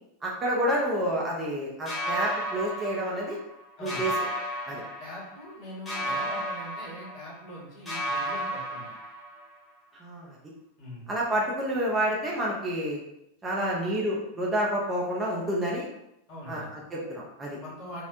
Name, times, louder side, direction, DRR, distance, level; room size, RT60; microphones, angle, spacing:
voice 1, 0.2-3.4 3.8-4.3 4.7-4.8 10.0-10.4 11.1-13.0 13.4-15.9 16.5-17.6, right 1 dB, 20° right, -3 dB, 0.5 m, -29 dB
sound 1, 1.9-3.6 3.9-5.5 5.9-7.6 7.9-9.5, equal, 10° left, 0.8 m, -33 dB
voice 2, 3.8-4.1 4.7-8.9 10.8-11.1 13.5-13.8 16.3-16.7 17.6-18.1, left 1 dB, 40° left, -7 dB, 1.1 m, -42 dB
2.8 x 2.0 x 2.5 m, 0.83 s
figure-of-eight pair, 90°, 0 cm